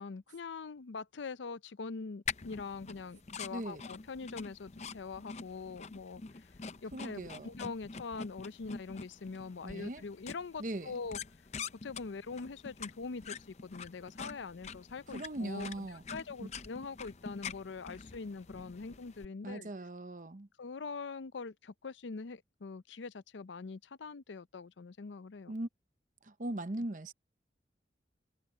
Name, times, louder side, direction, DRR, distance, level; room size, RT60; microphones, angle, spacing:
voice 1, 0.0-6.2 6.8-11.2 11.8-19.7 20.6-25.5, left 4 dB, 85° left, 0.6 m, -43 dB
sound 1, 2.3-19.3, left 5 dB, 35° left, 0.6 m, -46 dB
voice 2, 3.5-3.8 6.9-7.5 9.6-10.0 10.6-10.9 15.1-16.0 16.4-16.5 19.4-20.5 25.5-25.7 26.3-27.1, right 1 dB, 45° right, 0.8 m, -39 dB
head